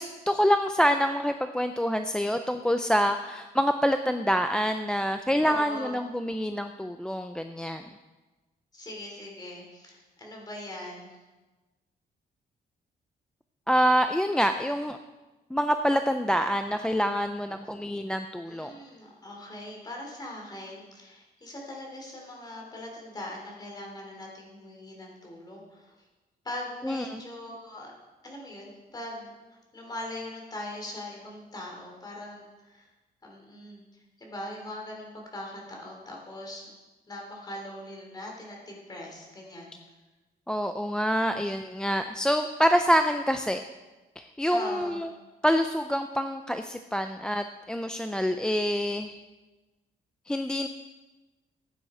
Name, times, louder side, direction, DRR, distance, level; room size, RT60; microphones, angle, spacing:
voice 1, 0.0-7.9 13.7-15.0 15.5-18.7 26.8-27.2 40.5-43.6 44.2-45.1 45.4-49.1 50.3-50.7, equal, 5° left, 7 dB, 0.4 m, -26 dB
voice 2, 5.4-6.0 8.7-11.1 18.5-25.9 26.4-27.9 28.2-32.9 33.2-36.7 37.1-39.7 44.5-45.0, left 1 dB, 25° left, -1 dB, 3.0 m, -41 dB
15.0 x 9.1 x 4.3 m, 1.2 s
wide cardioid pair, 160°, 17 cm